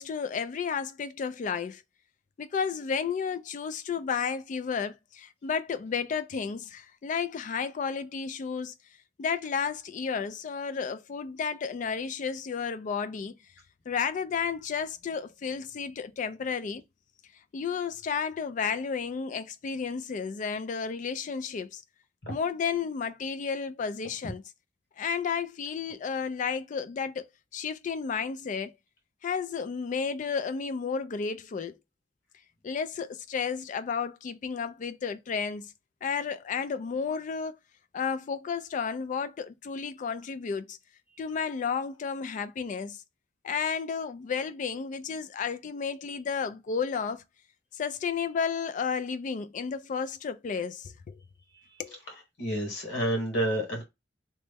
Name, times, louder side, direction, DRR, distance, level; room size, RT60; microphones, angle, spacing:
voice 1, 0.0-1.8 2.4-8.7 9.2-13.4 13.9-16.8 17.5-21.8 22.3-24.4 25.0-28.7 29.2-31.8 32.6-35.7 36.0-37.5 37.9-40.8 41.2-43.0 43.4-47.2 47.7-51.2 51.8-52.0, left 6 dB, 45° left, 0.3 m, -32 dB
voice 2, 52.4-53.8, right 1 dB, 75° left, 1.4 m, -29 dB
3.0 x 2.1 x 3.3 m
head